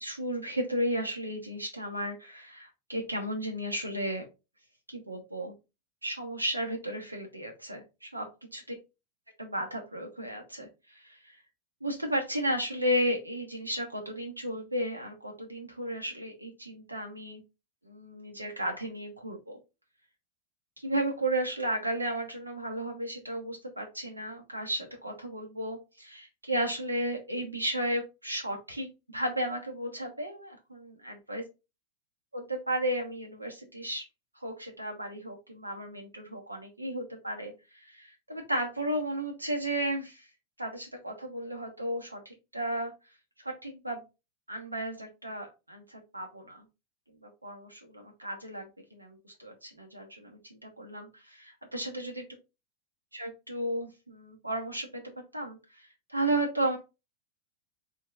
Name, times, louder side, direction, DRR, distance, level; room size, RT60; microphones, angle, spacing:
voice 1, 0.0-4.3 4.9-5.5 6.0-8.3 8.5-8.6 9.4-11.4 11.8-17.4 17.8-19.6 20.8-31.4 32.3-34.0 34.3-40.3 40.6-42.9 43.4-44.0 44.5-46.6 47.2-52.2 53.1-56.8, right 1 dB, 85° right, 2 dB, 0.9 m, -34 dB
4.6 x 3.6 x 2.5 m, 0.27 s
figure-of-eight pair, 90°, 0 cm